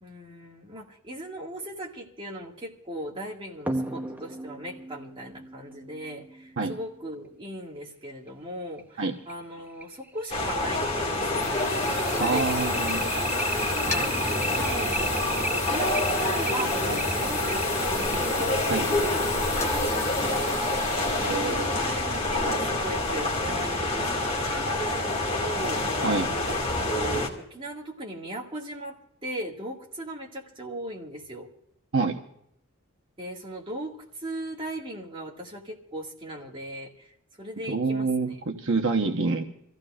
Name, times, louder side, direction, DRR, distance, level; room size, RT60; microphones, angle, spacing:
voice 1, 0.0-12.4 12.7-13.3 13.8-14.2 14.5-15.0 15.3-26.0 26.4-29.0 29.2-31.5 33.2-37.1 37.4-38.4, right 1 dB, 25° right, -2 dB, 2.1 m, -38 dB
sound 1, 3.7-6.8 8.3-8.4 8.8-8.9 9.3-9.4 9.8-19.9, right 1 dB, 10° right, 0.7 m, -35 dB
sound 2, 10.3-27.3, left 2 dB, 30° left, 2.1 m, -27 dB
sound 3, 10.9-23.7, left 3 dB, 15° left, 1.0 m, -37 dB
voice 2, 12.2-13.0 18.7-18.8 21.2-21.8 26.0-26.3 31.9-32.2 37.7-39.4, right 4 dB, 60° right, 3 dB, 1.0 m, -26 dB
27.5 x 15.0 x 2.5 m, 0.74 s
head